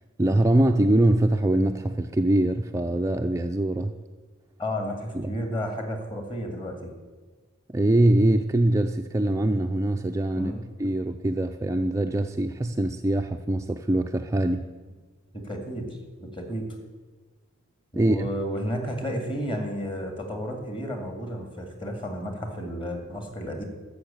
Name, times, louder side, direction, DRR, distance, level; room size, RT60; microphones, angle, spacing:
voice 1, 0.2-3.9 5.1-5.3 7.7-10.5 10.8-14.7 18.0-18.3, right 1 dB, 15° right, 5 dB, 0.4 m, -23 dB
voice 2, 4.6-6.9 10.4-10.7 15.4-15.9 16.2-16.6 17.9-23.6, equal, 25° left, 4 dB, 2.2 m, -32 dB
13.0 x 6.9 x 8.9 m, 1.4 s
head